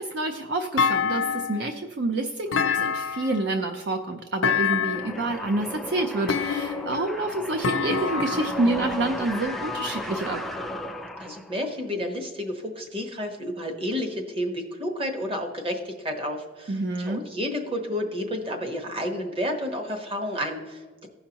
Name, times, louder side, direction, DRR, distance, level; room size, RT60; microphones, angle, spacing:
voice 1, 0.0-10.4 16.7-17.2, right 2 dB, 55° right, 5 dB, 0.5 m, -28 dB
Thump thud, 0.8-1.7 2.5-3.4 4.4-5.2 6.3-7.0 7.6-8.7, left 6 dB, 85° left, 0.5 m, -26 dB
sound 1, 4.9-11.7, equal, ahead, 0.3 m, -34 dB
voice 2, 11.2-21.1, equal, 25° right, 4 dB, 1.0 m, -31 dB
15.5 x 5.7 x 2.9 m, 1.4 s
head